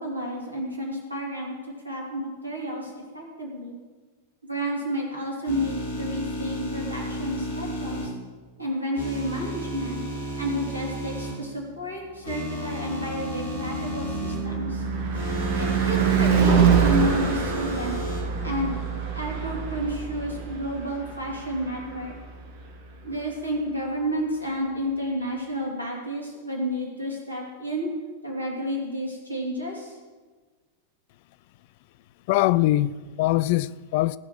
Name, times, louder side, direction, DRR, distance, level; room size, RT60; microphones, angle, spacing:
voice 1, 0.0-3.8 4.4-8.1 8.6-10.1 10.4-14.9 15.6-18.0 18.4-18.7 19.1-22.2 23.0-27.9 28.2-30.0, equal, 85° right, 3.0 m, -31 dB
sound 1, 5.4-8.1 8.9-11.3 12.2-14.3 15.1-18.2, right 1 dB, 70° left, 3.6 m, -33 dB
Car passing by / Truck / Engine, 12.3-22.6, right 6 dB, 55° right, 2.0 m, -26 dB
voice 2, 32.3-34.2, left 16 dB, 50° left, 0.3 m, -22 dB
16.0 x 5.8 x 7.7 m
figure-of-eight pair, 90°, 0 cm